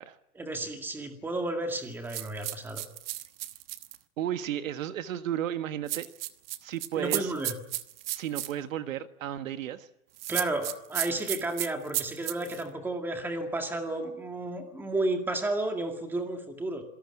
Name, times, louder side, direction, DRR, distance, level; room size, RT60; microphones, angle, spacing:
voice 1, 0.3-2.8 7.0-7.6 10.3-16.8, right 2 dB, 5° right, 5 dB, 2.1 m, -32 dB
sound 1, 2.1-4.0 5.9-8.5 10.2-12.6, right 15 dB, 40° right, 1.2 m, -34 dB
voice 2, 4.2-6.1 6.6-7.3 8.1-9.9, right 11 dB, 60° right, 10 dB, 1.6 m, -33 dB
27.0 x 18.0 x 9.8 m, 0.82 s
supercardioid pair, 170°, 45 cm